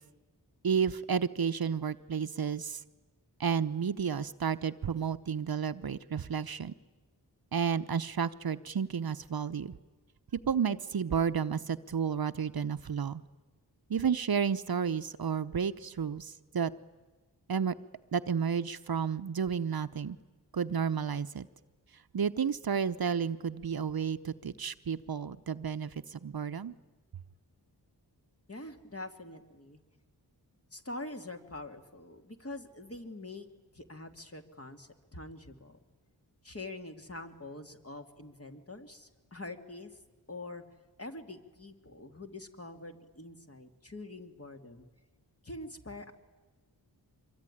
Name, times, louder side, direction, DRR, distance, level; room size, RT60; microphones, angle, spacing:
voice 1, 0.6-2.8 3.4-6.7 7.5-9.7 10.3-13.2 13.9-16.7 17.5-17.7 18.1-20.2 20.5-21.5 22.1-26.7, right 7 dB, 60° right, 11 dB, 0.9 m, -31 dB
voice 2, 28.5-29.8 30.7-33.5 33.7-35.8 36.4-40.0 40.3-40.6 41.0-44.9 45.4-46.1, left 2 dB, 35° left, 5 dB, 2.6 m, -45 dB
25.0 x 23.0 x 10.0 m, 1.3 s
wide cardioid pair, 60°, 41 cm